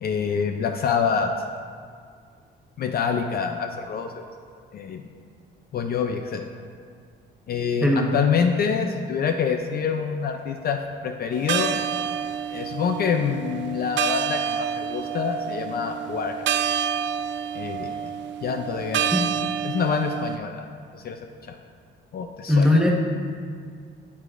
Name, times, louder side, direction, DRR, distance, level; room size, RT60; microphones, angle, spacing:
voice 1, 0.0-1.3 2.8-4.2 4.7-5.0 5.7-6.4 7.5-11.8 12.5-16.5 17.5-17.9 18.4-19.1 19.6-20.7 20.9-21.2 21.5-21.6 22.1-22.9, left 6 dB, 50° left, 5 dB, 0.4 m, -26 dB
sound 1, 11.3-20.4, right 8 dB, 70° right, 0.4 m, -28 dB
voice 2, 22.5-22.9, left 1 dB, 5° right, -1 dB, 1.1 m, -18 dB
8.1 x 7.5 x 2.5 m, 2.1 s
cardioid pair, 90°, 20 cm